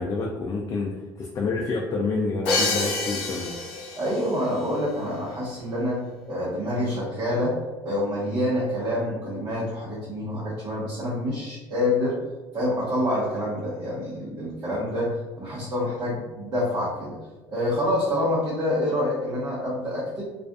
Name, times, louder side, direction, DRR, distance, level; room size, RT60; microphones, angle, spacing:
voice 1, 0.0-3.5, left 3 dB, 40° left, -1 dB, 0.4 m, -28 dB
Crash cymbal, 2.5-4.3, left 3 dB, 80° left, 0.6 m, -27 dB
voice 2, 4.0-7.5 7.8-12.2 12.5-17.2 17.5-20.2, left 1 dB, 45° right, -9 dB, 1.0 m, -27 dB
2.4 x 2.4 x 2.3 m, 1.2 s
cardioid pair, 100°, 9 cm